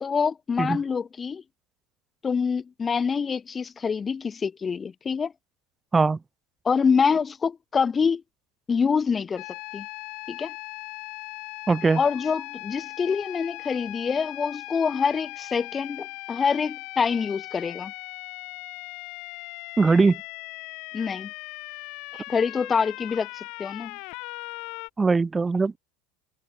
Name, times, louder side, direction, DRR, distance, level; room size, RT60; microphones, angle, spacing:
voice 1, 0.0-1.4 2.2-5.3 6.6-8.2 8.7-9.4 9.7-9.9 10.3-10.5 12.0-17.9 20.9-21.3 22.3-24.0, left 6 dB, 25° left, 1.4 m, -26 dB
sound 1, 9.4-24.9, left 27 dB, 60° left, 6.2 m, -39 dB
voice 2, 11.7-12.0 19.8-20.2 25.0-25.8, right 4 dB, 15° right, 1.2 m, -20 dB
hypercardioid pair, 95°, 0 cm